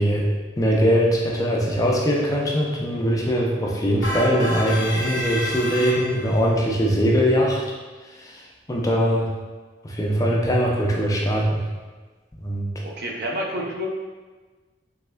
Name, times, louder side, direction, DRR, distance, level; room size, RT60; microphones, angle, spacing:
voice 1, 0.0-7.6 8.2-9.3 9.8-11.6 12.4-12.7, equal, 20° left, -2 dB, 0.4 m, -21 dB
sound 1, 4.0-6.4, left 1 dB, 75° left, 0.7 m, -29 dB
voice 2, 12.8-13.9, equal, 60° right, -1 dB, 0.5 m, -29 dB
3.4 x 3.3 x 2.2 m, 1.3 s
head